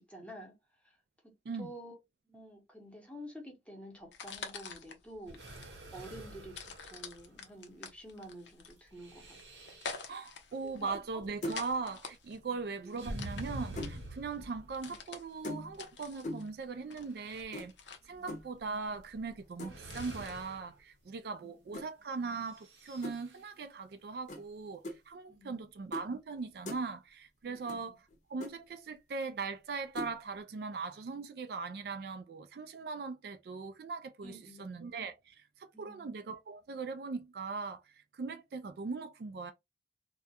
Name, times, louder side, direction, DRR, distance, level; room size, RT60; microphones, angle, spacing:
voice 1, 0.1-0.6 0.8-1.0 1.2-1.3 1.6-2.0 2.3-9.4 9.7-9.8 10.6-11.2 12.4-12.9 18.1-18.3 21.4-21.7 25.3-25.7 27.4-28.0 34.2-34.8 35.7-36.1, equal, 5° left, 0.8 m, -50 dB
sound 1, 4.0-20.3, left 5 dB, 85° left, 0.6 m, -48 dB
sound 2, 5.3-7.5 8.9-10.1 13.0-15.0 16.2-16.3 16.8-17.4 19.0-19.2 19.6-20.8 22.5-23.4, right 1 dB, 85° right, 0.8 m, -46 dB
voice 2, 10.1-17.7 18.1-28.0 28.3-39.5, right 4 dB, 60° right, 0.3 m, -40 dB
sound 3, 10.9-11.2 11.4-11.8 13.0-14.0 15.4-15.9 16.2-16.6 17.5-17.7 18.3-18.5 19.6-19.9 21.7-21.9 23.0-23.2 24.3-24.4 24.8-25.0 25.9-26.1 26.4-26.8 27.7-27.8 28.1-28.2 28.4-28.5 30.0-30.2, left 1 dB, 40° left, 0.7 m, -41 dB
2.3 x 2.1 x 2.7 m
head